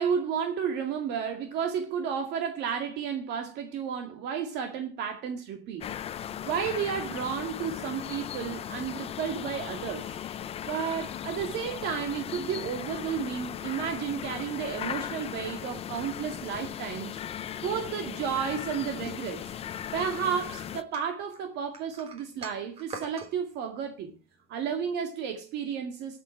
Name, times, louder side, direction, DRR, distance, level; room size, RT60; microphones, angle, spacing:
voice 1, 0.0-5.9 6.4-10.1 10.6-17.2 17.6-19.5 19.9-24.1 24.5-26.2, right 7 dB, 55° right, 2.2 m, -32 dB
sound 1, 5.8-20.8, left 9 dB, 30° left, 0.8 m, -37 dB
sound 2, 20.9-23.3, right 4 dB, 30° right, 3.7 m, -43 dB
20.5 x 8.3 x 4.5 m
cardioid pair, 155°, 21 cm